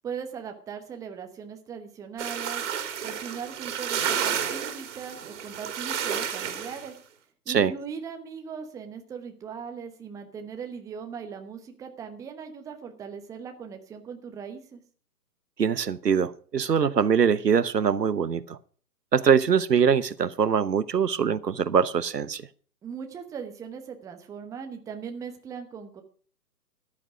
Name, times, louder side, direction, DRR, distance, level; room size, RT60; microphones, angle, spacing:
voice 1, 0.0-2.6 3.0-6.9 7.4-14.8 22.8-26.0, right 6 dB, 5° right, 1.0 m, -39 dB
sound 1, 2.2-6.9, right 8 dB, 45° right, 2.7 m, -31 dB
voice 2, 15.6-18.6 19.1-22.5, right 7 dB, 75° right, 1.1 m, -23 dB
14.0 x 11.0 x 5.0 m
figure-of-eight pair, 130°, 49 cm